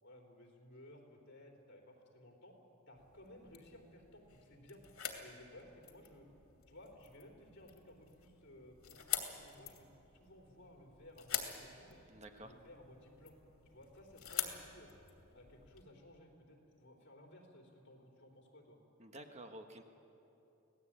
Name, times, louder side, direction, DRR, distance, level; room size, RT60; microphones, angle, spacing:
voice 1, 0.0-2.6 2.9-4.8 5.2-6.3 6.7-9.9 10.1-12.0 12.4-13.4 13.7-14.9 15.3-18.8, left 1 dB, 55° left, 1 dB, 3.7 m, -58 dB
sound 1, 3.0-15.8, left 10 dB, 70° left, 2.6 m, -46 dB
voice 2, 12.1-12.5 19.0-19.8, right 1 dB, 30° right, 5 dB, 1.3 m, -51 dB
26.0 x 17.5 x 8.8 m, 2.9 s
head